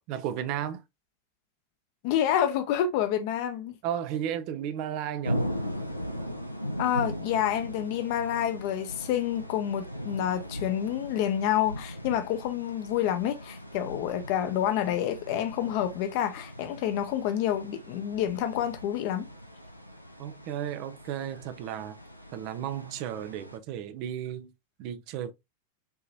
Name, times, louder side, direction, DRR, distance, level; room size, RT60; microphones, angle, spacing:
voice 1, 0.1-0.8 3.8-5.4 20.2-22.0 22.3-24.5 24.8-25.3, right 10 dB, 45° right, 0.5 m, -34 dB
voice 2, 2.0-3.7 6.8-19.3, left 10 dB, 45° left, 0.8 m, -28 dB
sound 1, 5.2-23.6, equal, 90° left, 0.5 m, -39 dB
5.5 x 3.0 x 2.7 m
figure-of-eight pair, 90°, 0 cm